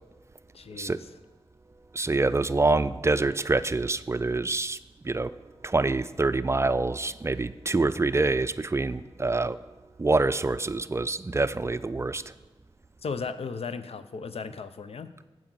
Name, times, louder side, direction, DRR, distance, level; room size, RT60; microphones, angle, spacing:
voice 1, 0.5-1.0 13.0-15.1, left 5 dB, 80° left, 11 dB, 0.5 m, -36 dB
voice 2, 1.9-4.8 5.0-5.3 5.6-9.6 10.0-12.2, right 3 dB, 25° right, 14 dB, 0.4 m, -26 dB
8.8 x 7.7 x 6.1 m, 1.2 s
wide cardioid pair, 60°, 10 cm